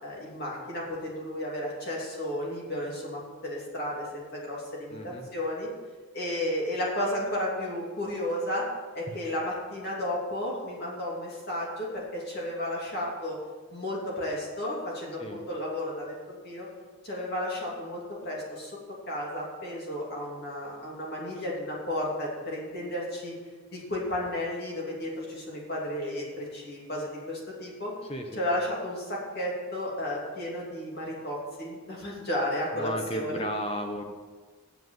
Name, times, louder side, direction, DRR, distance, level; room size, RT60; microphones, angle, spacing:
voice 1, 0.0-5.7 6.1-8.7 8.9-13.4 13.7-16.7 17.0-18.7 19.1-23.3 23.7-27.9 28.3-33.4, left 1 dB, 45° left, -4 dB, 2.9 m, -33 dB
voice 2, 4.9-5.3 15.2-15.4 28.1-28.4 32.7-34.0, equal, 25° left, 4 dB, 0.9 m, -34 dB
8.1 x 7.3 x 7.2 m, 1.4 s
head